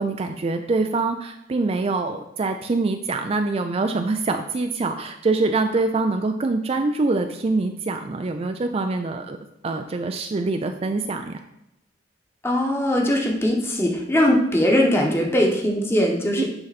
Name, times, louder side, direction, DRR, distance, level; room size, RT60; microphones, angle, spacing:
voice 1, 0.0-9.4 9.6-11.4 16.4-16.5, right 3 dB, 35° right, 6 dB, 0.4 m, -24 dB
voice 2, 12.4-16.4, left 1 dB, 15° left, -1 dB, 1.1 m, -20 dB
9.6 x 4.0 x 4.1 m, 0.85 s
head